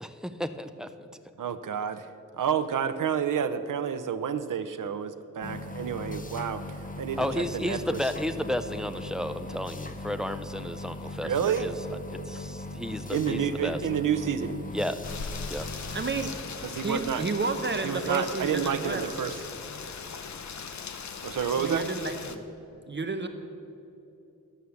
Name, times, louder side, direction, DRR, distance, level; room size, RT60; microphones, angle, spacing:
voice 1, 0.0-1.1 7.2-11.7 12.1-13.8 14.7-15.0 15.5-15.7, left 1 dB, ahead, 9 dB, 0.4 m, -33 dB
voice 2, 1.4-2.1 2.4-7.8 11.2-11.7 13.1-14.7 16.6-17.3 17.8-19.4 21.2-21.9, right 8 dB, 80° right, 10 dB, 0.6 m, -29 dB
sound 1, 5.4-16.3, left 2 dB, 25° left, 0.7 m, -39 dB
Rain, 15.0-22.4, left 5 dB, 60° left, 0.7 m, -39 dB
voice 3, 15.9-16.3 16.8-19.1 21.5-22.4 22.9-23.3, right 3 dB, 35° right, 7 dB, 0.7 m, -31 dB
12.5 x 6.4 x 6.9 m, 2.8 s
wide cardioid pair, 115°, 31 cm